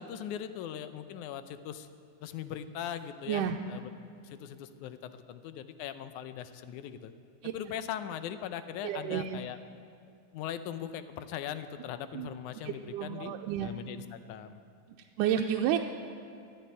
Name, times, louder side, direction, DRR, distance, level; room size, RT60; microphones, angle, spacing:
voice 1, 0.0-1.9 2.2-3.9 4.2-7.1 7.5-9.6 10.3-13.3 13.6-14.6, left 9 dB, 80° left, 11 dB, 2.1 m, -40 dB
voice 2, 8.8-9.4 12.1-12.3 12.6-13.7 15.2-15.8, right 10 dB, 90° right, 3 dB, 2.2 m, -30 dB
14.0 x 10.5 x 9.4 m, 2.5 s
omnidirectional pair, 3.6 m